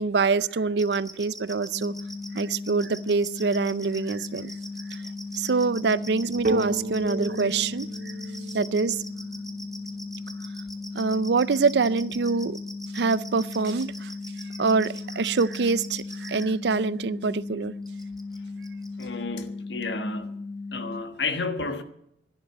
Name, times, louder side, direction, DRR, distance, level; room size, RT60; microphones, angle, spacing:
voice 1, 0.0-1.9 2.3-4.5 4.9-5.0 5.4-7.9 8.5-9.0 10.9-12.6 12.9-14.1 14.6-17.7, right 4 dB, 70° right, 0.5 m, -25 dB
sound 1, 0.8-16.4 17.9-18.4 18.6-19.0, equal, ahead, 1.4 m, -42 dB
sound 2, 1.7-21.0, left 3 dB, 55° left, 1.2 m, -37 dB
sound 3, 6.4-10.1, right 2 dB, 50° right, 0.8 m, -32 dB
voice 2, 19.0-20.4 20.7-21.8, left 3 dB, 80° left, 1.4 m, -31 dB
12.0 x 10.5 x 8.7 m
head